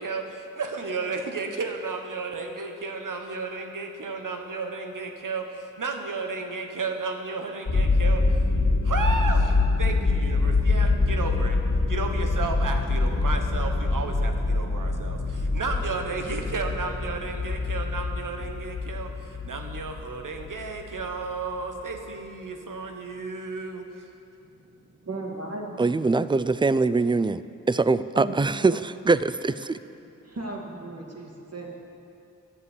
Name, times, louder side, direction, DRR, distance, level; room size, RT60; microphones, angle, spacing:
voice 1, 0.0-8.2 8.8-11.6 11.9-24.1, right 4 dB, 80° right, 1.2 m, -33 dB
sound 1, 7.7-21.8, left 3 dB, 65° left, 2.0 m, -25 dB
voice 2, 24.4-25.8 28.1-28.3 29.7-29.8 30.2-31.8, right 2 dB, 50° right, 2.3 m, -36 dB
voice 3, 25.8-29.8, right 3 dB, 15° right, 0.4 m, -23 dB
11.0 x 7.4 x 8.1 m
cardioid pair, 40°, 31 cm